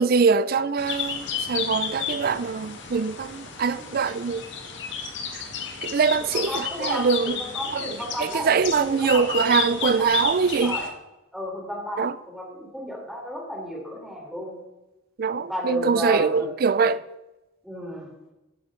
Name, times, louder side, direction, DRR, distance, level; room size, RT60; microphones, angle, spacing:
voice 1, 0.0-4.4 5.8-7.4 7.7-10.8 12.0-12.1 15.2-17.0, right 5 dB, 50° right, 0.4 m, -23 dB
sound 1, 0.8-10.9, left 6 dB, 70° left, 1.7 m, -32 dB
voice 2, 6.3-10.3 10.6-10.9 11.3-14.6 15.5-16.5 17.6-18.1, equal, ahead, 3.8 m, -33 dB
15.0 x 8.7 x 3.8 m
head